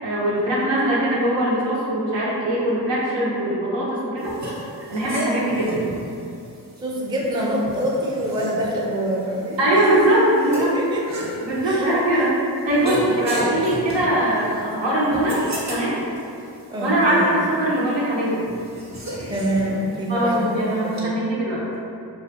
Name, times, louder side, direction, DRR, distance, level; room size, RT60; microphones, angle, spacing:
voice 1, 0.0-4.3 4.9-5.8 9.6-10.7 11.4-12.4 12.7-15.4 15.7-16.0 16.8-18.4 20.1-21.6, right 1 dB, 85° right, -6 dB, 0.7 m, -21 dB
sound 1, 4.2-21.0, right 1 dB, 40° right, 0.7 m, -35 dB
voice 2, 6.8-9.6 10.6-11.0 11.6-12.3 13.2-13.4 14.2-14.3 16.7-17.7 19.3-21.2, equal, 10° right, -4 dB, 0.4 m, -26 dB
2.3 x 2.2 x 2.7 m, 2.5 s
cardioid pair, 50°, 43 cm